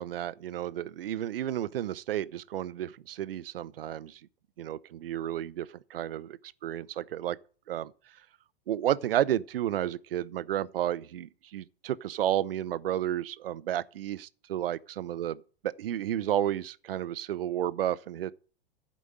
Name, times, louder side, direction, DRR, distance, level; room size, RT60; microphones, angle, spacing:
voice 1, 0.0-4.2 4.6-6.4 6.6-7.4 7.7-7.9 8.7-15.4 15.6-18.3, right 11 dB, 75° right, 0.7 m, -32 dB
11.0 x 5.2 x 7.7 m
hypercardioid pair, 95°, 29 cm